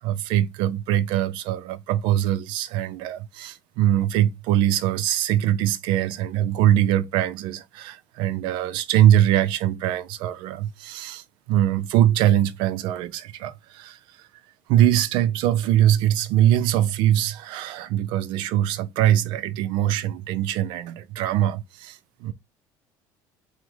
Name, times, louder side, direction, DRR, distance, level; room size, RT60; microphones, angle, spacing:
voice 1, 0.0-14.3 14.7-22.3, right 12 dB, 75° right, 0.5 m, -22 dB
4.9 x 2.2 x 3.7 m
cardioid pair, 155°, 8 cm